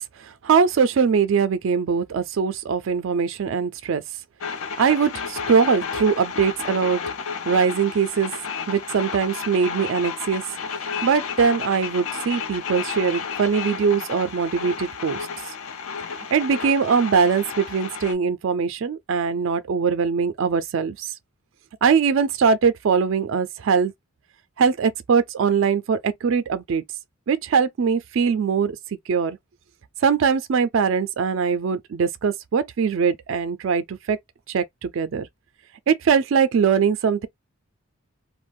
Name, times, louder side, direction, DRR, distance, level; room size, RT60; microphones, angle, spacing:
voice 1, 0.0-4.0 4.8-7.0 7.5-8.3 8.7-10.4 11.0-15.3 16.3-21.1 21.8-23.9 24.6-26.8 27.3-28.8 29.1-29.4 30.0-34.2 34.5-35.3 35.9-37.3, right 6 dB, 60° right, 0.3 m, -21 dB
sound 1, 4.4-18.1, left 6 dB, 75° left, 0.5 m, -32 dB
2.4 x 2.1 x 3.3 m
head